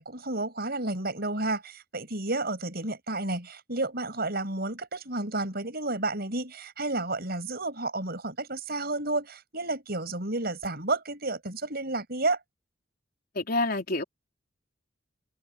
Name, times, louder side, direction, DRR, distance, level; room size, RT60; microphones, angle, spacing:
voice 1, 0.0-12.4, right 2 dB, 55° right, 6.9 m, -31 dB
voice 2, 13.3-14.0, left 2 dB, 50° left, 4.1 m, -27 dB
head